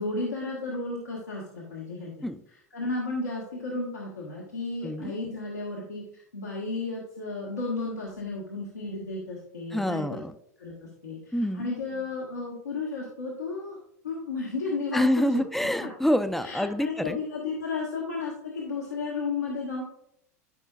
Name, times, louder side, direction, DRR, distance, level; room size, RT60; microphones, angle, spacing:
voice 1, 0.0-2.3 2.7-10.2 10.6-13.8 14.0-15.4 15.8-15.9 16.4-19.8, left 3 dB, 85° left, -4 dB, 1.6 m, -33 dB
voice 2, 9.7-10.3 11.3-11.7 14.9-17.2, left 1 dB, ahead, 10 dB, 0.6 m, -26 dB
13.5 x 5.4 x 2.4 m, 0.72 s
figure-of-eight pair, 85°, 9 cm